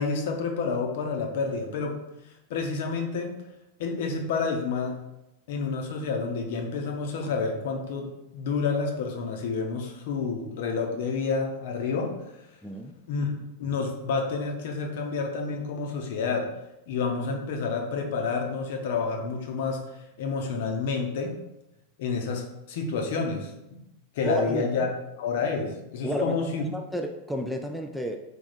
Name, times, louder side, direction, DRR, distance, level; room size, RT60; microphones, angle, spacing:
voice 1, 0.0-2.0 2.5-3.4 3.8-5.0 5.5-8.1 8.3-12.2 13.1-13.3 13.6-16.5 16.9-19.9 20.2-21.4 22.0-23.8 24.1-24.9 25.2-26.6, left 4 dB, 55° left, 2 dB, 0.6 m, -29 dB
voice 2, 12.6-13.0 24.2-24.9 26.0-26.4 26.7-28.2, equal, ahead, 3 dB, 0.3 m, -31 dB
3.4 x 2.3 x 4.2 m, 0.91 s
figure-of-eight pair, 90°, 0 cm